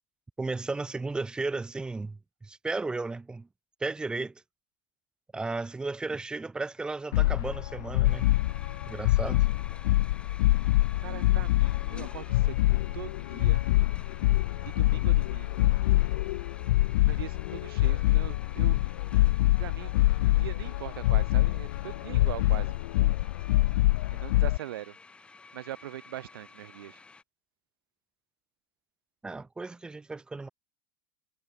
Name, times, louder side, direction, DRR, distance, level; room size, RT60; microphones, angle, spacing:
voice 1, 0.4-3.5 3.8-4.4 5.3-8.3 8.9-9.5 29.2-30.5, right 3 dB, 5° right, 1.6 m, -34 dB
sound 1, 7.1-24.6, left 18 dB, 65° left, 0.5 m, -25 dB
sound 2, 8.0-27.2, left 4 dB, 10° left, 3.4 m, -51 dB
voice 2, 11.0-12.5 12.9-13.6 14.6-15.7 17.0-18.8 19.6-22.8 24.1-25.0 25.5-27.0, right 14 dB, 80° right, 6.1 m, -41 dB
supercardioid pair, 165°, 12 cm